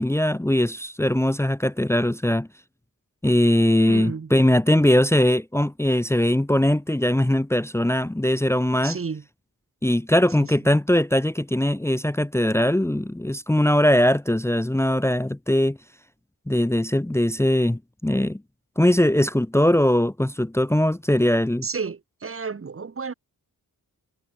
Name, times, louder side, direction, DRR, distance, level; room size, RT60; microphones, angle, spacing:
voice 1, 0.0-2.5 3.2-9.0 9.8-15.8 16.5-18.4 18.8-21.7, left 1 dB, 5° left, 1.0 m, -21 dB
voice 2, 3.9-4.3 8.8-9.2 10.4-10.7 21.6-23.1, right 5 dB, 40° right, 1.3 m, -32 dB
wide cardioid pair, 115°, 36 cm